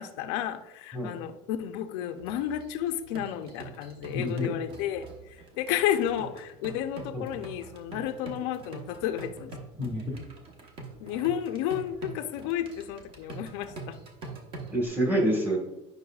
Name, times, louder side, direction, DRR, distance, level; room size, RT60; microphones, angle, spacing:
voice 1, 0.0-9.6 11.0-14.0, left 10 dB, 75° left, 8 dB, 0.5 m, -32 dB
sound 1, 2.2-14.9, right 3 dB, 35° right, 1.0 m, -45 dB
voice 2, 4.1-4.5 7.1-7.2 9.8-10.0 14.7-15.6, equal, 15° right, 0 dB, 1.4 m, -27 dB
9.3 x 5.5 x 2.3 m, 0.98 s
cardioid pair, 155°, 15 cm